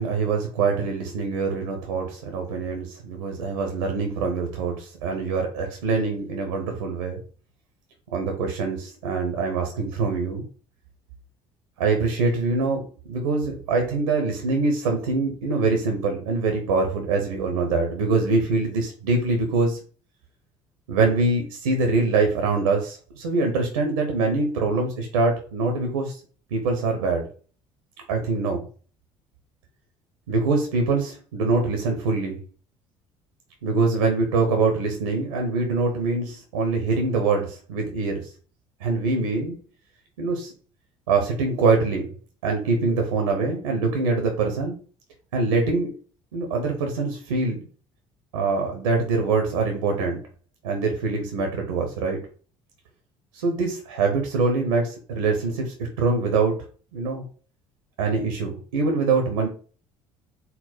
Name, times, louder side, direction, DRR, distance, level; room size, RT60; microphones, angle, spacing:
voice 1, 0.0-7.2 8.1-10.4 11.8-12.8 13.1-19.8 20.9-26.2 26.5-27.3 28.1-28.6 30.3-32.4 33.6-38.3 38.8-39.6 40.2-40.5 41.1-42.1 42.4-44.8 45.3-45.9 46.3-47.6 48.3-50.2 50.6-52.2 53.3-56.6 56.9-57.2 58.0-59.5, right 3 dB, 85° right, 3 dB, 0.7 m, -24 dB
4.0 x 2.0 x 4.2 m, 0.40 s
hypercardioid pair, 60°, 15 cm